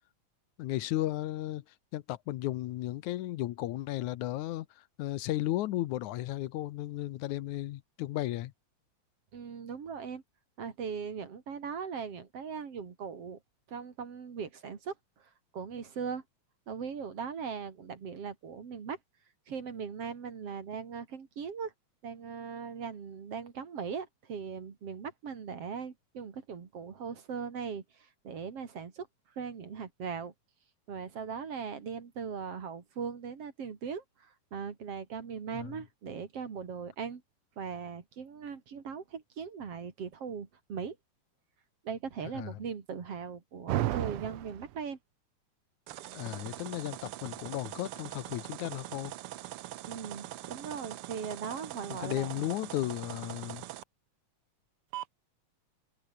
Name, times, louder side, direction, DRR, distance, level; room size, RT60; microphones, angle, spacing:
voice 1, 0.6-1.6 1.9-8.5 35.5-35.8 42.3-42.5 46.1-49.1 51.9-53.6, left 15 dB, 80° left, 2.3 m, -35 dB
voice 2, 9.3-10.2 10.6-13.4 13.7-14.9 15.5-16.2 16.7-19.0 19.5-21.7 22.0-29.1 29.4-30.3 30.9-37.2 37.6-41.0 41.8-45.0 49.9-52.5, right 6 dB, 55° right, 3.4 m, -39 dB
sound 1, 43.7-44.8 45.9-53.8 54.9-55.0, right 15 dB, 80° right, 1.3 m, -39 dB
open air
omnidirectional pair, 3.3 m